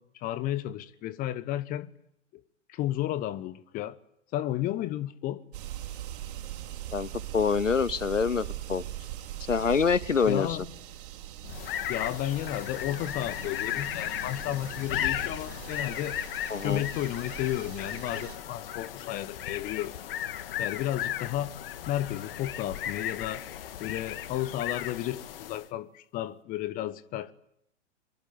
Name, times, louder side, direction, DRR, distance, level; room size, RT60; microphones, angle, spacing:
voice 1, 0.0-1.9 2.3-2.4 2.7-4.0 4.3-5.4 10.3-10.7 11.9-16.2 16.6-20.0 20.6-21.5 21.9-23.4 23.8-27.3, left 13 dB, 20° left, 1.1 m, -33 dB
sound 1, 5.5-18.4, right 12 dB, 45° right, 3.9 m, -41 dB
voice 2, 6.9-8.8 9.5-10.6 16.5-16.9, left 5 dB, 80° left, 1.0 m, -26 dB
sound 2, 11.4-25.7, left 11 dB, 45° left, 1.8 m, -36 dB
24.5 x 23.5 x 8.8 m
figure-of-eight pair, 110°, 38 cm